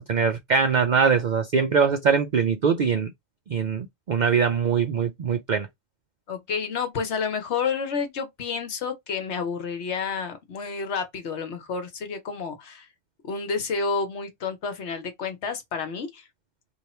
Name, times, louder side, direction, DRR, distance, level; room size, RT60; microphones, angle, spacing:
voice 1, 0.0-3.1 3.5-5.7, right 6 dB, 65° right, 0.4 m, -22 dB
voice 2, 6.3-12.9 13.2-16.2, left 5 dB, 65° left, 1.1 m, -30 dB
3.2 x 2.4 x 4.2 m
omnidirectional pair, 1.3 m